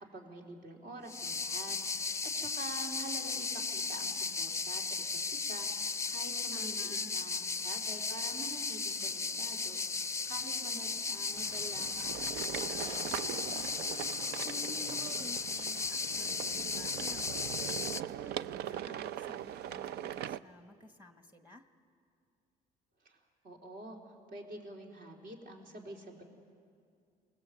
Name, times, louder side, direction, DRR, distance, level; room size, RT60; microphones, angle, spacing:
voice 1, 0.0-13.4 23.0-23.2 23.4-26.2, right 1 dB, 60° right, 1 dB, 3.9 m, -47 dB
sound 1, 1.1-18.0, left 4 dB, 15° left, 0.5 m, -36 dB
voice 2, 6.5-7.2 14.4-21.7, left 2 dB, 10° right, 7 dB, 1.3 m, -52 dB
sound 2, 11.3-20.4, right 11 dB, 75° right, 0.6 m, -41 dB
Crushing, 12.8-16.2 16.6-16.7, right 2 dB, 30° right, 1.2 m, -55 dB
27.5 x 20.0 x 8.2 m, 2.3 s
cardioid pair, 110°, 17 cm